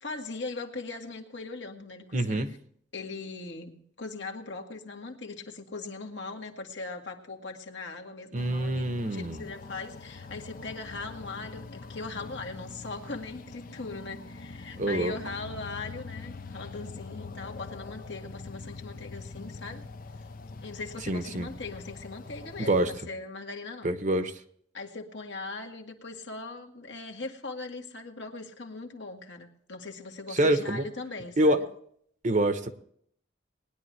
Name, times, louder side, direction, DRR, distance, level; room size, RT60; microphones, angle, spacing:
voice 1, 0.0-2.5 2.9-19.8 20.6-23.9 24.7-31.6, left 3 dB, 70° left, 3 dB, 1.7 m, -40 dB
voice 2, 2.1-2.5 8.3-9.4 14.8-15.1 21.1-21.5 22.6-22.9 23.8-24.4 30.3-30.8 31.4-31.7 32.2-32.7, right 1 dB, 40° right, 10 dB, 0.9 m, -26 dB
sound 1, 8.4-23.0, left 3 dB, 50° left, 0.6 m, -44 dB
19.5 x 10.5 x 3.3 m, 0.64 s
head